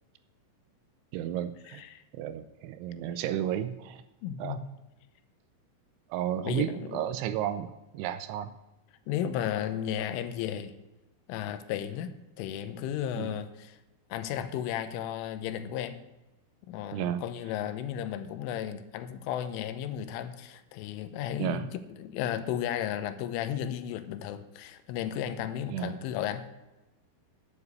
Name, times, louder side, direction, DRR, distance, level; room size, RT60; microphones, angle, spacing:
voice 1, 1.1-1.8 2.2-4.0 4.4-4.6 6.1-8.5 13.2-13.3 16.9-17.2 21.4-21.7 25.7-25.9, right 11 dB, 85° right, 11 dB, 2.9 m, -32 dB
voice 2, 1.7-2.0 4.2-4.6 6.4-7.0 9.1-10.7 11.3-12.1 12.4-13.8 14.1-16.0 16.7-26.4, left 10 dB, 85° left, 10 dB, 3.3 m, -34 dB
9.9 x 9.7 x 8.1 m, 1.0 s
omnidirectional pair, 5.7 m